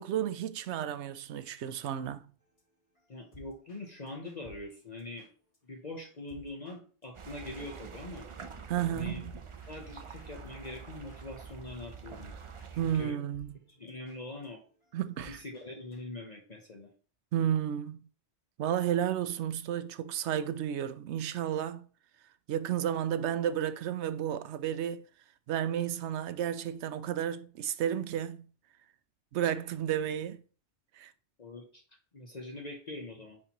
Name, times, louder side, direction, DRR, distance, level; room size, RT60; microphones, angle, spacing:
voice 1, 0.0-2.3 8.7-9.2 12.8-13.5 14.9-15.4 17.3-18.0 18.6-21.9 22.5-25.0 25.5-28.5 29.3-30.4 30.9-31.1, right 10 dB, 75° right, 0.9 m, -32 dB
sound 1, 2.4-5.6 5.9-6.8 7.0-7.1 7.4-12.7 12.9-13.0 13.3-16.0, left 2 dB, 60° left, 3.9 m, -58 dB
voice 2, 3.1-5.3 5.6-8.3 8.9-9.2 9.7-12.3 12.7-13.2 13.7-14.6 15.3-16.9 31.4-31.8 32.1-33.4, left 2 dB, 40° left, 0.9 m, -43 dB
sound 2, 7.1-13.1, right 6 dB, 40° right, 0.5 m, -46 dB
9.7 x 4.2 x 3.0 m
omnidirectional pair, 1.2 m